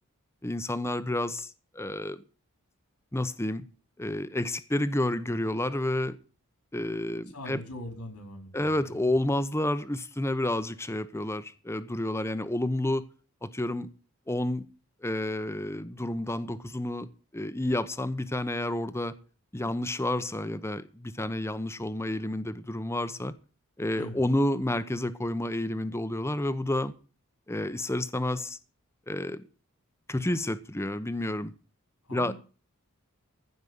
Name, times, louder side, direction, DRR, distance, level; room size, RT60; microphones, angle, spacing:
voice 1, 0.4-2.2 3.1-3.7 4.0-6.2 6.7-7.6 8.5-13.0 13.4-13.9 14.3-14.7 15.0-19.1 19.5-23.3 23.8-26.9 27.5-28.6 29.1-29.5 30.1-31.5 32.1-32.3, left 1 dB, 10° left, 0.8 m, -30 dB
voice 2, 7.3-9.1 23.9-24.2 32.0-32.3, left 1 dB, 90° left, 4.1 m, -42 dB
15.0 x 5.3 x 9.5 m
head